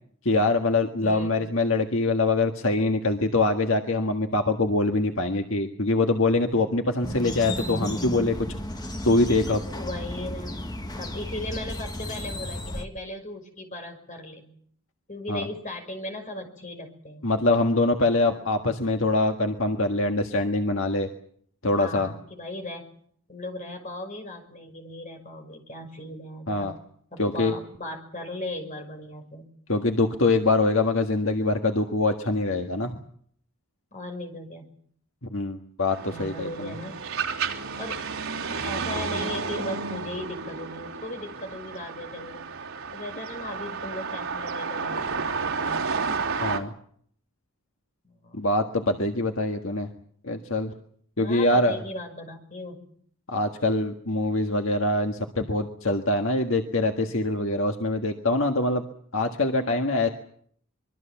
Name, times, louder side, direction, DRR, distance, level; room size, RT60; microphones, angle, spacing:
voice 1, 0.2-8.5 9.0-9.6 15.3-15.4 17.2-21.1 21.6-22.1 26.5-26.7 27.2-27.6 29.7-32.9 35.3-36.7 46.4-46.7 48.3-49.9 50.2-50.7 51.2-51.8 53.3-58.9 59.1-60.1, left 2 dB, 65° left, 4 dB, 1.7 m, -24 dB
voice 2, 1.0-1.4 9.7-10.6 11.0-14.5 15.1-17.3 21.8-22.9 23.3-26.7 27.1-29.5 33.9-34.7 36.0-37.0 37.8-38.0 38.6-42.5 42.9-46.1 48.0-48.5 51.2-52.8, left 1 dB, 35° left, 4 dB, 5.7 m, -37 dB
sound 1, 7.0-12.9, left 1 dB, 20° left, 1.5 m, -34 dB
sound 2, 35.9-46.6, right 5 dB, 75° right, 3.1 m, -31 dB
25.0 x 23.0 x 7.3 m, 0.63 s
head